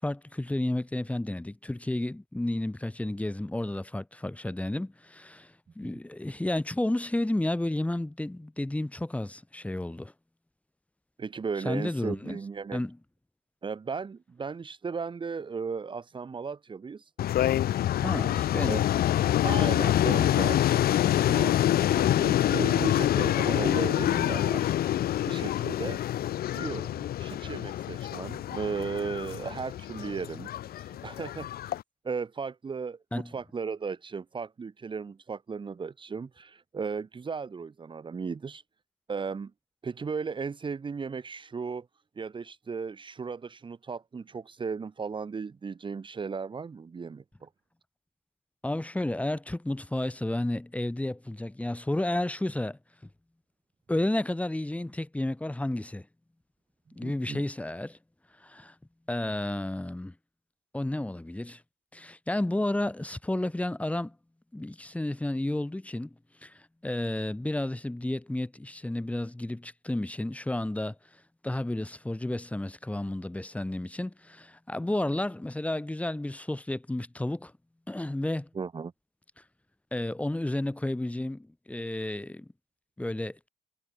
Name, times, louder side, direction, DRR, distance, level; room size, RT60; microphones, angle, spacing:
voice 1, 0.0-10.1 11.6-12.4 12.7-13.0 17.9-18.9 33.1-33.3 48.6-52.8 53.9-56.1 57.0-58.0 58.4-58.7 59.1-60.1 60.7-61.6 61.9-64.1 64.5-66.1 66.4-70.9 71.4-77.5 77.9-78.5 79.9-82.5 83.0-83.4, left 1 dB, 10° left, 8.0 m, -31 dB
voice 2, 11.2-12.8 13.6-17.1 18.7-18.8 19.4-24.7 25.3-26.0 26.5-31.8 32.0-38.6 39.1-39.5 39.8-41.9 42.2-47.5 57.0-57.4 78.5-78.9, right 5 dB, 30° right, 3.8 m, -36 dB
sound 1, 17.2-31.8, left 12 dB, 65° left, 2.8 m, -26 dB
cardioid pair, 110°, 17 cm